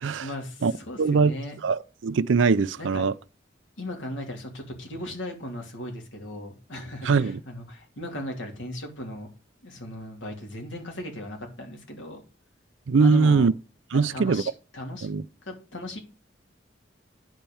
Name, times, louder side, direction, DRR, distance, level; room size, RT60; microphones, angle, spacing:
voice 1, 0.2-1.6 2.8-3.0 3.8-9.3 9.6-12.2 13.0-13.5 13.9-15.1 15.4-16.0, left 1 dB, 85° left, 2.8 m, -37 dB
voice 2, 1.0-1.3 1.6-3.1 7.0-7.4 12.9-13.5 13.9-14.4 15.0-15.2, right 4 dB, 80° right, 0.5 m, -21 dB
10.5 x 4.4 x 7.0 m
head